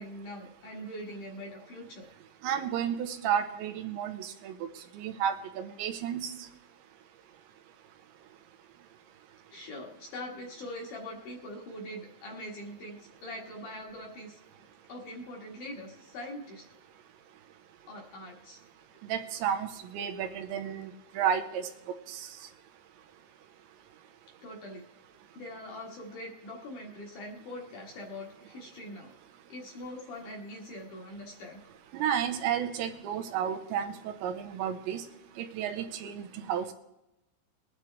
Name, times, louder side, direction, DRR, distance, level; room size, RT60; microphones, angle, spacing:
voice 1, 0.0-2.1 9.5-14.4 14.9-16.6 17.9-18.6 24.4-24.8 25.3-29.1 29.5-31.6, left 1 dB, 55° left, -1 dB, 2.6 m, -43 dB
voice 2, 2.4-4.5 4.9-6.3 19.1-20.9 21.2-21.7 22.1-22.3 31.9-35.0 35.4-36.2 36.5-36.7, right 8 dB, 85° right, 7 dB, 3.2 m, -32 dB
21.0 x 10.0 x 3.3 m, 0.87 s
omnidirectional pair, 5.2 m